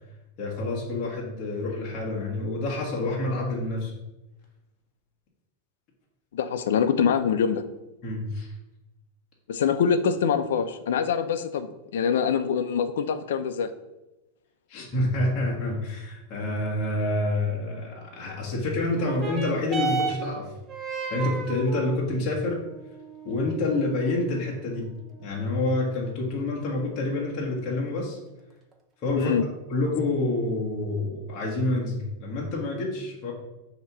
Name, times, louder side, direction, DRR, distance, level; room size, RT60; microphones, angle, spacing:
voice 1, 0.4-3.9 8.0-8.5 14.7-20.5 21.1-22.6 23.2-24.9 25.2-28.2 29.0-29.3 29.7-33.3, left 2 dB, 30° left, -3 dB, 1.5 m, -28 dB
voice 2, 6.3-7.6 9.5-13.7 29.2-29.4, left 7 dB, 85° left, 10 dB, 0.6 m, -24 dB
sound 1, 18.9-27.9 28.7-28.8, right 4 dB, 15° right, 0.7 m, -36 dB
7.2 x 3.0 x 6.0 m, 0.99 s
supercardioid pair, 170°, 0 cm